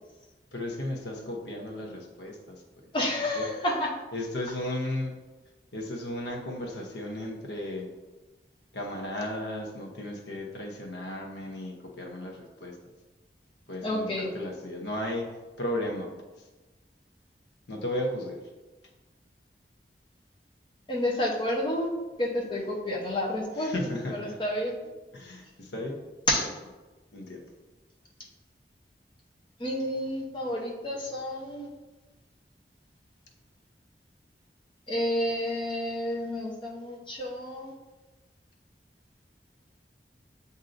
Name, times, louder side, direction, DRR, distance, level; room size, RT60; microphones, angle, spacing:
voice 1, 0.5-2.6 3.4-3.5 4.1-5.2 5.7-7.9 8.7-12.8 13.7-16.1 17.7-18.4 23.6-24.4 25.1-26.0 26.4-26.5 27.1-27.4, left 1 dB, 80° left, 1 dB, 0.8 m, -35 dB
voice 2, 2.9-3.9 13.8-14.3 20.9-21.9 22.2-23.7 24.1-24.8 26.3-26.5 29.6-31.7 34.9-37.7, left 1 dB, 30° left, -2 dB, 0.7 m, -30 dB
7.6 x 2.7 x 2.5 m, 1.2 s
head